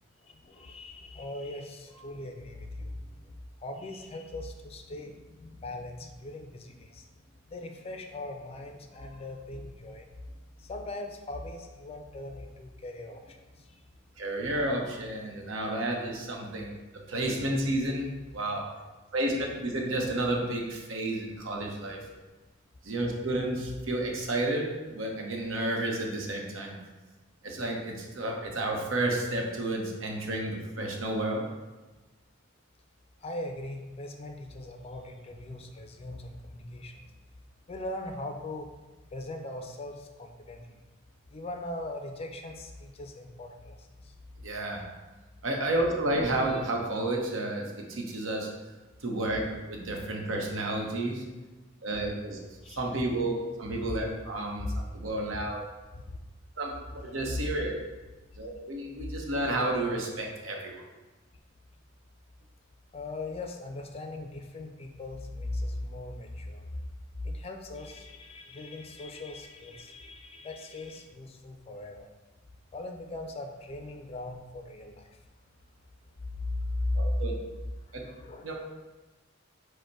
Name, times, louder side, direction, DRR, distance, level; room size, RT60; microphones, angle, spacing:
voice 1, 0.2-7.1 7.5-10.1 10.6-13.9 15.2-15.4 19.3-20.8 21.9-22.0 33.2-37.1 37.7-38.7 39.1-40.8 41.3-44.1 46.4-46.7 52.6-53.0 53.7-53.9 54.6-54.8 55.3-55.5 55.9-56.2 56.7-57.5 59.0-59.1 62.9-66.8 67.2-72.1 72.7-75.2 76.3-77.2 77.6-78.5, left 2 dB, 30° left, 4 dB, 0.4 m, -39 dB
voice 2, 14.2-16.8 17.1-18.0 18.3-18.6 19.1-22.0 22.8-26.8 27.4-31.4 44.4-44.8 45.4-48.5 49.0-51.2 51.8-52.4 52.7-54.7 54.9-55.6 56.6-57.8 58.4-60.8 76.9-77.3 77.9-78.0 78.4-78.5, right 1 dB, 80° right, 0 dB, 0.8 m, -31 dB
5.0 x 2.1 x 4.6 m, 1.2 s
head